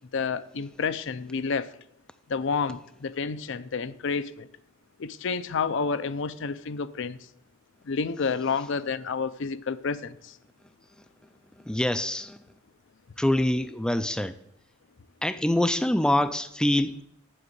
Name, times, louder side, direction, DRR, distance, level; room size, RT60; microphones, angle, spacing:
voice 1, 0.1-1.7 2.3-4.5 5.0-7.2 7.9-10.4, left 5 dB, 65° left, 0.5 m, -30 dB
voice 2, 11.7-12.4 13.2-14.3 15.2-17.0, left 1 dB, 5° left, 0.3 m, -25 dB
7.7 x 6.3 x 8.0 m
head